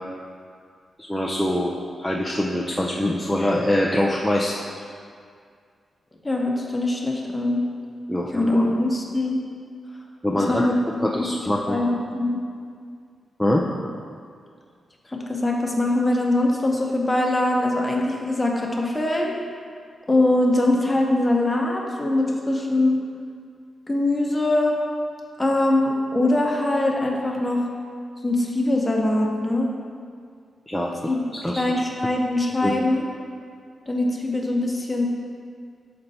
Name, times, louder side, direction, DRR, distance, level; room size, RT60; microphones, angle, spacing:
voice 1, 1.0-1.7 2.0-4.9 8.1-8.7 10.2-10.7 11.0-11.8 13.4-13.6 30.7-30.9 31.3-31.6 32.6-32.7, left 1 dB, ahead, -3 dB, 0.4 m, -24 dB
voice 2, 6.2-7.6 8.3-9.4 10.4-10.7 11.2-11.3 11.7-12.4 15.1-19.3 20.1-23.0 23.9-24.8 25.4-27.6 28.2-29.7 31.1-33.0 33.9-35.1, left 1 dB, 15° left, -1 dB, 0.8 m, -22 dB
6.5 x 4.4 x 4.1 m, 2.2 s
wide cardioid pair, 125°, 0 cm